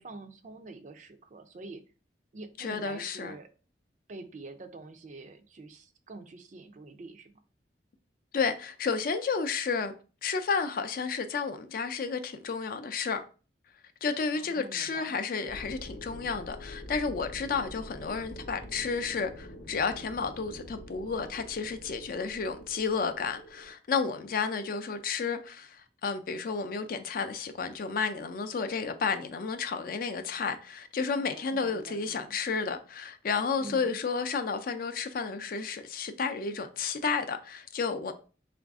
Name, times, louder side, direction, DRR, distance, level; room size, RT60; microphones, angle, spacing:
voice 1, 0.0-1.8 2.3-3.5 4.1-7.3 14.4-15.1 31.1-32.4 33.6-34.0, right 3 dB, 45° right, 0.4 m, -46 dB
voice 2, 2.6-3.3 8.3-9.9 10.2-13.2 14.0-38.1, left 5 dB, 50° left, 0.4 m, -32 dB
sound 1, 15.5-23.7, equal, 70° left, 0.8 m, -46 dB
3.9 x 2.5 x 3.5 m
head